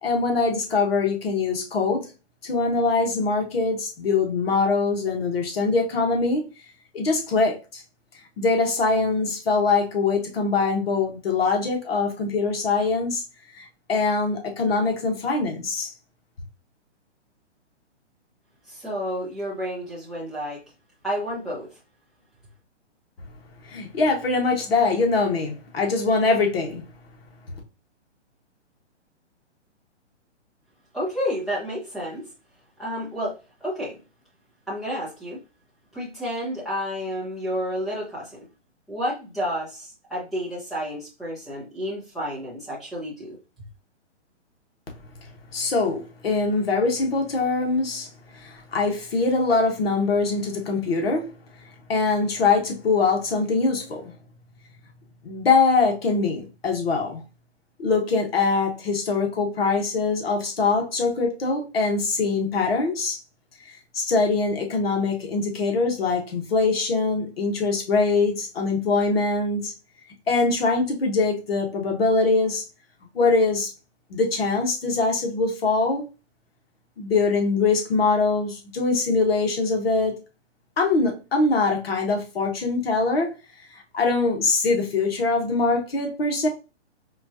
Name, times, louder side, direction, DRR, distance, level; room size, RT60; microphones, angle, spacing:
voice 1, 0.0-2.1 2.4-6.5 6.9-7.8 8.4-13.2 13.5-15.9 23.6-26.8 45.5-51.3 51.9-54.1 55.2-57.2 57.8-63.2 63.9-69.7 70.3-72.6 73.1-73.7 74.1-76.0 77.0-80.2 80.8-83.3 83.9-86.5, left 3 dB, 55° left, 1.2 m, -23 dB
voice 2, 18.7-20.6 21.0-21.7 30.9-32.2 32.8-33.3 33.6-34.0 34.7-35.4 35.9-38.5 38.9-43.4, equal, ahead, 0.6 m, -30 dB
4.4 x 2.4 x 2.7 m
hypercardioid pair, 160°, 35 cm